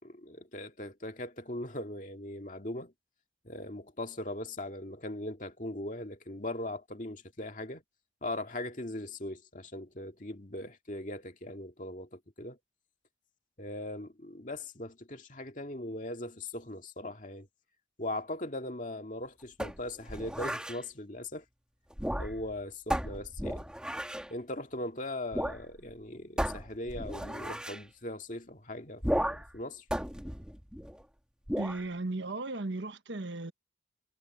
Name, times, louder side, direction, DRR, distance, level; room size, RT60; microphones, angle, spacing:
voice 1, 0.0-2.9 3.4-7.8 8.2-12.6 13.6-17.5 18.0-21.4 22.2-23.6 24.3-29.8, left 1 dB, 45° left, 2.2 m, -39 dB
sound 1, 19.6-20.8 21.9-22.5 22.9-24.3 25.3-25.6 25.9-26.0 26.4-27.8 29.0-29.6 29.9-31.0 31.5-31.8, equal, 5° right, 1.7 m, -34 dB
voice 2, 31.6-33.5, right 2 dB, 75° right, 1.2 m, -36 dB
head